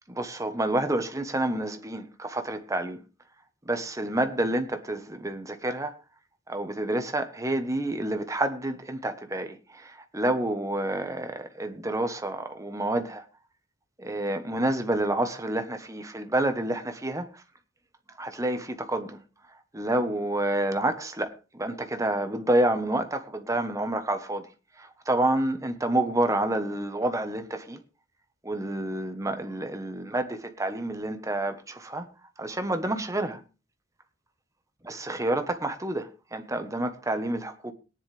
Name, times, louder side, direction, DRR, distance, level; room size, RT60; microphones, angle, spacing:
voice 1, 0.1-3.0 3.6-6.0 6.5-13.2 14.0-17.4 18.2-19.2 19.7-24.5 24.8-27.8 28.4-32.0 32.4-33.4 34.9-37.7, right 1 dB, 15° right, 1.2 m, -29 dB
18.5 x 10.0 x 3.4 m
head